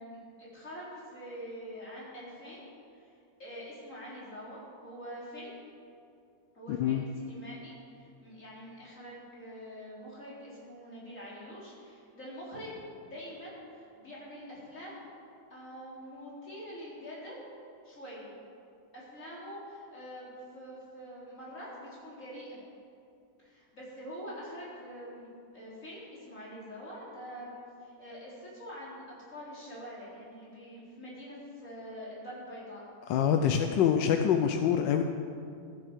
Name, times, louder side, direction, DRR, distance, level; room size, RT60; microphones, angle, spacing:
voice 1, 0.0-2.7 3.0-3.1 3.4-5.5 6.5-15.0 15.5-17.4 17.8-18.3 18.9-22.6 23.4-27.5 27.8-29.0 29.3-32.8 33.2-33.8, equal, 45° left, -7 dB, 4.3 m, -45 dB
voice 2, 6.7-7.0 33.1-35.0, left 8 dB, 85° left, 6 dB, 1.4 m, -25 dB
14.5 x 10.0 x 7.4 m, 2.4 s
omnidirectional pair, 1.9 m